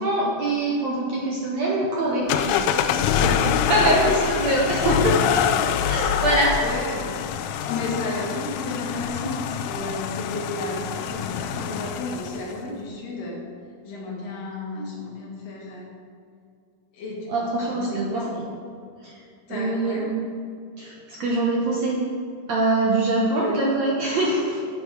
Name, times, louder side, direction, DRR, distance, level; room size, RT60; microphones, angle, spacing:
voice 1, 0.0-2.3 3.2-5.2 5.9-6.7 17.3-18.4 19.0-19.2 19.5-20.2 20.8-22.0 22.5-24.6, right 1 dB, 65° right, -4 dB, 1.9 m, -23 dB
sound 1, 2.3-12.5, left 8 dB, 85° left, 2.0 m, -25 dB
voice 2, 6.6-7.2 7.6-13.4 13.8-15.9 16.9-18.3 19.5-20.1 23.3-23.5, left 2 dB, 65° left, -3 dB, 3.4 m, -32 dB
9.8 x 8.8 x 4.8 m, 2.4 s
omnidirectional pair, 4.4 m